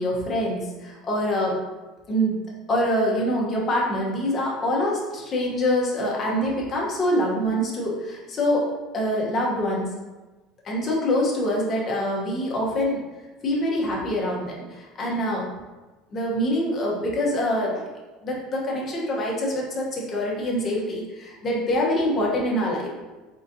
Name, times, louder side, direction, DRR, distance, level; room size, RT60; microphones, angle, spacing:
voice 1, 0.0-1.5 2.1-2.4 2.7-8.7 8.9-10.0 10.6-13.0 13.4-15.5 16.1-17.8 18.2-23.0, equal, 25° left, -3 dB, 0.9 m, -25 dB
4.0 x 3.8 x 2.7 m, 1.2 s
cardioid pair, 155°, 0 cm